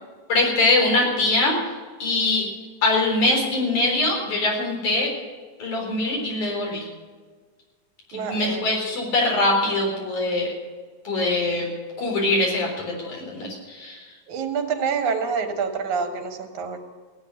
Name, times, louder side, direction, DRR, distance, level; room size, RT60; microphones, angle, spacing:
voice 1, 0.3-1.6 2.0-2.5 2.8-5.2 5.6-6.9 8.1-10.5 11.1-11.7 12.0-14.1, left 2 dB, 80° left, -1 dB, 5.5 m, -23 dB
voice 2, 8.1-8.8 14.3-16.8, right 6 dB, 80° right, 5 dB, 2.9 m, -27 dB
16.5 x 8.8 x 9.8 m, 1.4 s
omnidirectional pair, 3.4 m